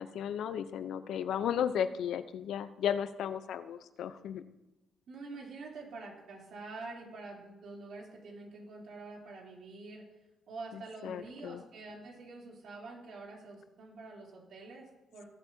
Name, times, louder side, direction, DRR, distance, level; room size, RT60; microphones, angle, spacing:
voice 1, 0.0-4.4 11.0-11.6, left 9 dB, 75° left, 12 dB, 0.6 m, -34 dB
voice 2, 5.1-10.2 10.5-15.3, right 3 dB, 65° right, -2 dB, 3.3 m, -46 dB
18.0 x 8.0 x 2.8 m, 0.99 s
cardioid pair, 90°, 0 cm